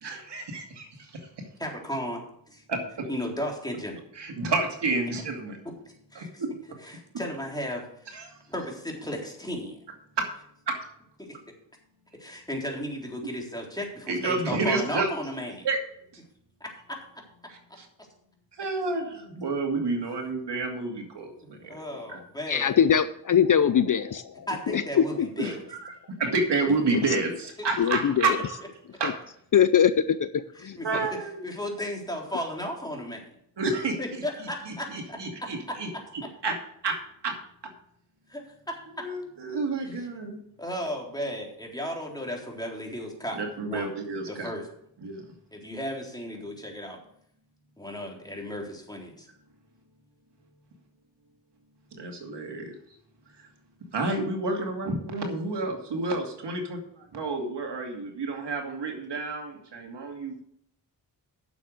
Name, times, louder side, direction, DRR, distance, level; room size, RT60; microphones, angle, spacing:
voice 1, 0.0-1.5 2.7-3.1 4.1-5.6 6.1-6.5 8.1-8.3 10.2-10.3 10.7-10.9 14.1-15.1 15.6-15.8 17.5-17.9 18.6-21.8 22.1-22.2 25.4-25.9 26.2-28.5 29.0-29.1 30.8-31.4 33.6-34.0 34.4-36.6 36.8-37.0 37.2-37.4 39.0-40.4 43.3-44.5 45.0-45.2 51.9-52.7 53.9-60.4, right 3 dB, 70° right, 2 dB, 2.6 m, -30 dB
voice 2, 1.6-2.6 3.1-4.0 6.1-6.4 6.8-7.8 8.1-8.2 8.5-9.8 12.2-15.6 21.7-22.7 24.5-25.6 30.6-31.0 31.4-33.2 34.0-35.2 38.3-38.4 40.6-43.9 44.4-44.6 45.5-47.0 47.8-49.3, equal, 10° left, 0 dB, 3.8 m, -34 dB
voice 3, 22.5-25.3 26.9-27.0 27.8-28.3 29.0-29.1 29.5-30.8, left 8 dB, 50° left, 13 dB, 0.6 m, -23 dB
9.4 x 7.2 x 6.5 m, 0.69 s
cardioid pair, 60°, 43 cm